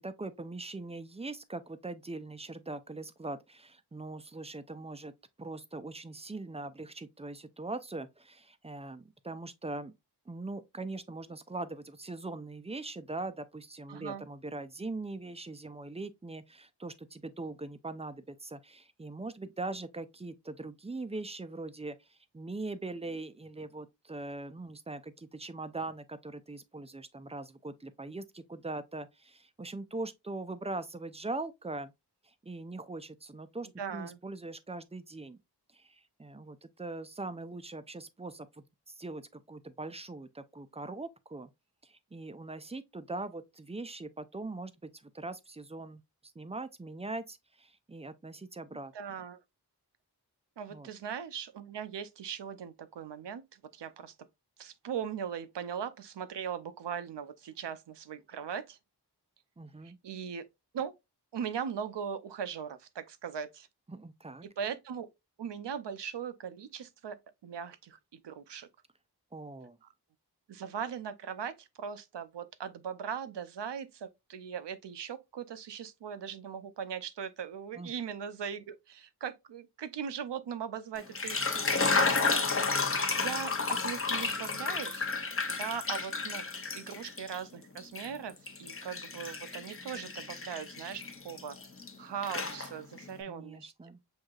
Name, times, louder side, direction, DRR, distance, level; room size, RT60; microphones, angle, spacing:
voice 1, 0.0-5.1 5.4-9.9 10.3-31.9 32.2-35.4 35.7-41.5 41.8-46.0 46.4-48.9 50.7-50.9 59.6-60.0 63.9-64.4 69.3-69.8 77.7-77.9 93.3-94.0, right 2 dB, 15° right, 0.4 m, -41 dB
voice 2, 13.9-14.2 33.8-34.2 48.9-49.4 50.6-54.1 54.6-58.8 59.8-60.5 60.7-60.9 61.3-63.7 64.4-65.1 65.4-68.7 69.8-69.9 70.5-82.6 83.2-85.1 85.5-86.5 86.7-91.6 92.0-93.7, right 7 dB, 80° right, 0.6 m, -39 dB
sound 1, 81.0-87.4 87.8-91.9 92.2-93.0, left 4 dB, 35° left, 0.6 m, -32 dB
6.2 x 2.8 x 2.3 m
wide cardioid pair, 70°, 41 cm